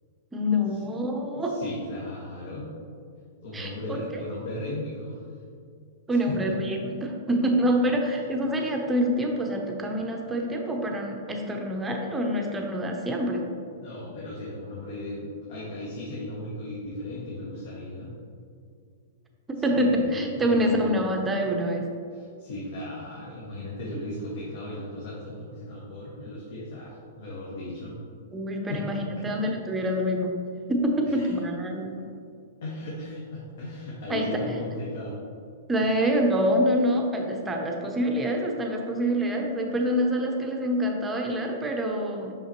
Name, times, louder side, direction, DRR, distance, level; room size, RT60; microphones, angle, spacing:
voice 1, 0.3-1.6 3.5-4.2 6.1-13.4 19.6-21.9 28.3-30.3 30.7-32.0 34.1-34.4 35.7-42.3, equal, 10° right, 1 dB, 0.6 m, -26 dB
voice 2, 1.4-2.7 3.4-5.2 8.6-8.7 13.7-18.1 19.6-20.9 22.1-28.0 28.7-29.0 31.1-31.3 32.6-35.2, left 1 dB, 70° left, -5 dB, 1.3 m, -36 dB
5.7 x 5.5 x 3.0 m, 2.3 s
hypercardioid pair, 155°, 0 cm